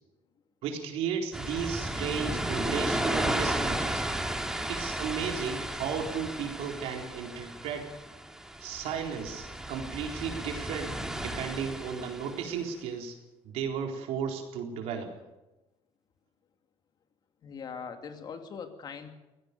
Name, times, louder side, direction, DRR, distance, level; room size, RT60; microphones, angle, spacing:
voice 1, 0.6-4.0 4.7-7.9 8.6-13.2 13.4-15.1, right 7 dB, 90° right, 3 dB, 4.1 m, -34 dB
sound 1, 1.3-12.5, right 1 dB, 5° right, 1.9 m, -34 dB
voice 2, 17.4-19.1, left 6 dB, 45° left, 6 dB, 2.5 m, -41 dB
24.0 x 17.0 x 6.9 m, 1.0 s
cardioid pair, 150°, 10 cm